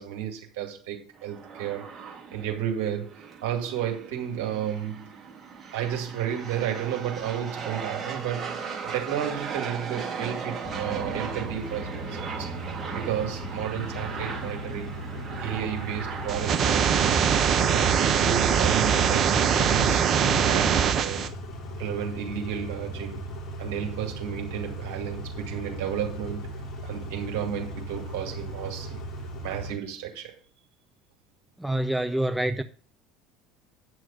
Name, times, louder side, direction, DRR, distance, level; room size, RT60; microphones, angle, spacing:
voice 1, 0.0-1.9 2.3-5.1 5.7-12.5 12.9-15.0 15.4-17.2 17.7-20.1 20.4-21.3 21.8-23.2 23.6-26.5 26.8-29.0 29.4-30.3, right 9 dB, 60° right, 2.2 m, -32 dB
sound 1, 1.1-18.1, right 6 dB, 20° right, 2.9 m, -37 dB
Car / Idling / Accelerating revving vroom, 10.6-29.7, equal, 35° left, 3.1 m, -37 dB
sound 2, 16.3-21.3, right 7 dB, 40° right, 1.0 m, -22 dB
voice 2, 31.6-32.6, right 1 dB, 5° right, 0.6 m, -26 dB
9.2 x 6.3 x 5.6 m
figure-of-eight pair, 65°, 0 cm